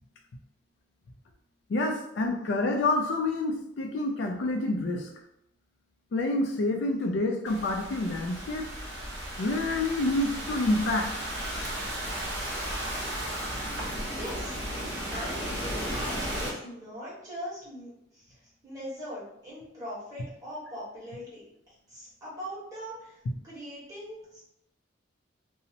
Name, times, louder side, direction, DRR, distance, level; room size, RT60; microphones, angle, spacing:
voice 1, 1.7-5.1 6.1-8.7 9.4-11.1, left 2 dB, 65° left, 3 dB, 0.3 m, -28 dB
Thunderstorm / Rain, 7.5-16.5, equal, 65° right, 0.7 m, -34 dB
voice 2, 14.0-14.5 15.1-18.3 18.6-23.2 23.4-24.4, equal, 20° right, -9 dB, 1.2 m, -41 dB
2.7 x 2.0 x 2.8 m, 0.77 s
head